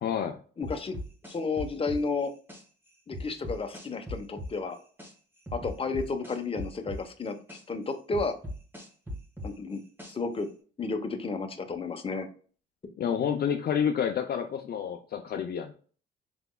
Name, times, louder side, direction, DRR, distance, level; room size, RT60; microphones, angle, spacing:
voice 1, 0.0-0.4 13.0-15.7, left 8 dB, 55° left, 5 dB, 0.5 m, -29 dB
voice 2, 0.6-0.9 1.3-2.3 3.1-4.8 5.5-8.3 9.4-9.8 10.1-10.5 10.8-12.3, left 4 dB, 30° left, 5 dB, 0.9 m, -32 dB
sound 1, 0.6-2.6 3.1-5.1 5.5-7.6 8.1-10.4, left 1 dB, 10° right, 1.6 m, -39 dB
5.1 x 3.4 x 2.2 m, 0.41 s
cardioid pair, 90°, 20 cm